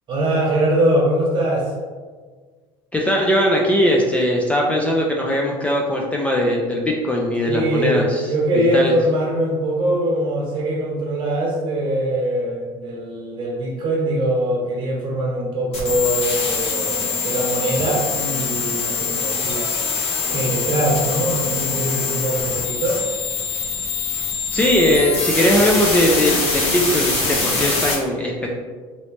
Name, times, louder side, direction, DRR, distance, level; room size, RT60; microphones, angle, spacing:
voice 1, 0.1-1.7 7.5-19.8 20.3-23.0, right 1 dB, 45° right, -2 dB, 1.0 m, -22 dB
voice 2, 2.9-8.2 8.5-8.9 24.5-28.5, left 1 dB, 10° left, -1 dB, 0.3 m, -19 dB
sound 1, 15.7-27.9, left 4 dB, 55° left, 1.1 m, -23 dB
3.0 x 2.9 x 3.1 m, 1.5 s
supercardioid pair, 120°, 12 cm